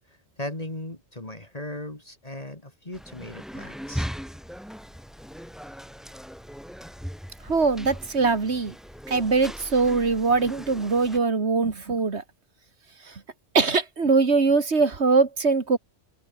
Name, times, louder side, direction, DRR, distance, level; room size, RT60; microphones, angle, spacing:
voice 1, 0.1-4.1, left 1 dB, 35° left, 3.2 m, -37 dB
sound 1, 2.9-11.2, equal, ahead, 5.5 m, -39 dB
voice 2, 7.4-8.7 9.1-12.2 13.0-13.2 13.5-15.8, right 4 dB, 90° right, 2.5 m, -22 dB
open air
omnidirectional pair, 1.1 m